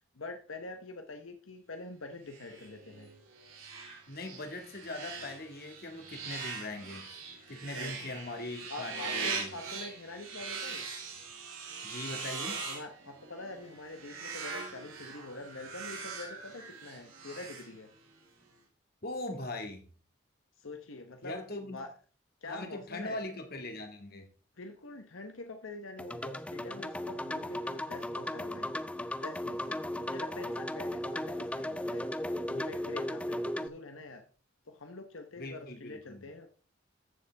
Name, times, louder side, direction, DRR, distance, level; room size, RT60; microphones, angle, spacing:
voice 1, 0.1-3.1 7.7-8.2 8.7-10.8 12.3-17.9 20.6-21.3 21.6-21.9 22.4-23.2 24.6-28.7 29.1-32.1 32.4-34.2 34.7-36.5, left 2 dB, 80° left, 6 dB, 1.1 m, -45 dB
sound 1, 2.3-18.2, right 4 dB, 90° right, 4.3 m, -42 dB
voice 2, 4.1-7.1 7.5-9.5 11.8-12.6 19.0-19.8 21.2-21.8 22.4-24.3 35.4-36.2, left 2 dB, 50° left, 5 dB, 1.9 m, -40 dB
sound 2, 26.0-33.7, left 1 dB, 5° left, 0.4 m, -36 dB
14.5 x 6.9 x 3.5 m, 0.39 s
head